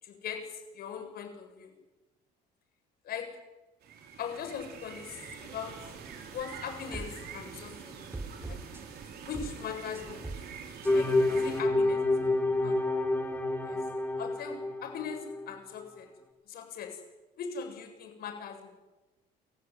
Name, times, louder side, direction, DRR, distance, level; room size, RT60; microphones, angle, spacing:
voice 1, 0.0-1.7 3.0-3.3 4.2-5.7 6.3-8.0 8.4-8.6 9.2-10.2 10.9-12.8 13.6-13.9 14.2-16.1 16.4-17.0 17.4-18.7, left 7 dB, 65° left, 4 dB, 7.3 m, -40 dB
sound 1, 3.8-11.6, right 6 dB, 70° right, 5.1 m, -45 dB
sound 2, 6.3-6.6 6.9-7.1 7.5-7.8 8.1-9.1 9.3-9.5 9.9-10.4 10.8-11.1, right 2 dB, 15° right, 3.0 m, -41 dB
sound 3, 10.9-15.4, left 2 dB, 10° left, 4.8 m, -28 dB
28.5 x 15.0 x 9.8 m, 1.1 s
cardioid pair, 110°, 17 cm